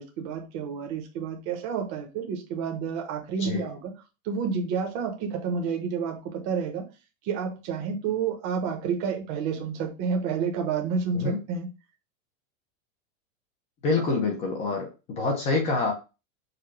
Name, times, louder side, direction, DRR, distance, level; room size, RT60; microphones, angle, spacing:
voice 1, 0.0-3.9 4.2-6.8 7.2-11.7, right 6 dB, 30° right, 3 dB, 0.8 m, -30 dB
voice 2, 13.8-15.9, left 3 dB, 15° left, 2 dB, 0.5 m, -26 dB
4.9 x 2.2 x 4.5 m, 0.29 s
supercardioid pair, 175°, 41 cm